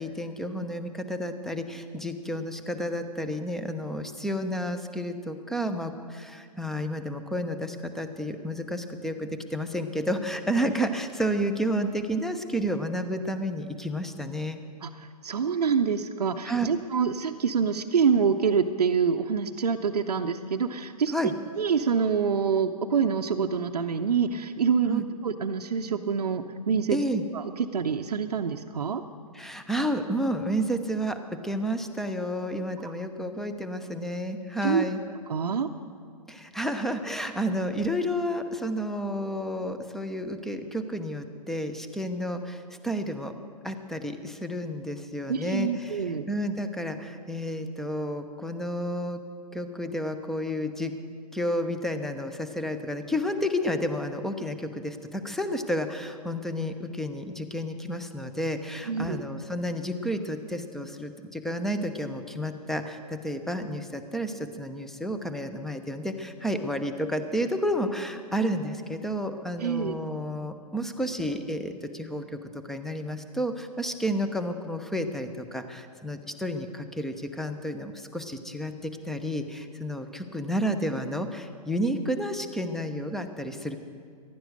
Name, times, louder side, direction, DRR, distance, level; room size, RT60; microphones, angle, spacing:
voice 1, 0.0-14.6 16.5-16.7 21.1-21.3 24.9-25.0 26.9-27.2 29.3-31.2 31.4-35.0 36.3-43.3 43.6-49.2 49.5-50.9 51.3-83.8, equal, ahead, 8 dB, 0.7 m, -31 dB
voice 2, 15.2-21.1 21.6-27.0 27.3-29.0 34.6-34.8 35.3-35.7 45.3-46.3 58.9-59.2 69.6-70.0, right 6 dB, 80° right, 5 dB, 0.7 m, -26 dB
15.0 x 11.0 x 6.6 m, 2.2 s
figure-of-eight pair, 115°, 20 cm